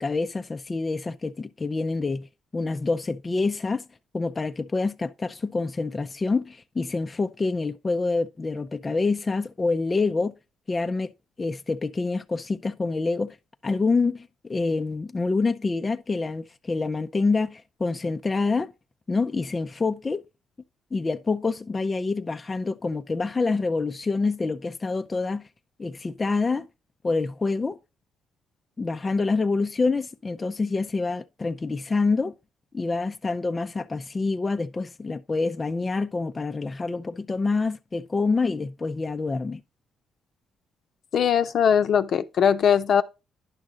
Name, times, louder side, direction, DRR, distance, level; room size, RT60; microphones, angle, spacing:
voice 1, 0.0-2.3 2.5-3.9 4.1-10.3 10.7-11.1 11.4-13.4 13.6-18.7 19.1-20.2 20.9-25.4 25.8-26.7 27.0-27.8 28.8-32.3 32.7-39.6, left 3 dB, 25° left, 0.5 m, -26 dB
voice 2, 41.1-43.0, left 8 dB, 60° left, 0.7 m, -20 dB
10.5 x 6.1 x 3.8 m
cardioid pair, 90°, 0 cm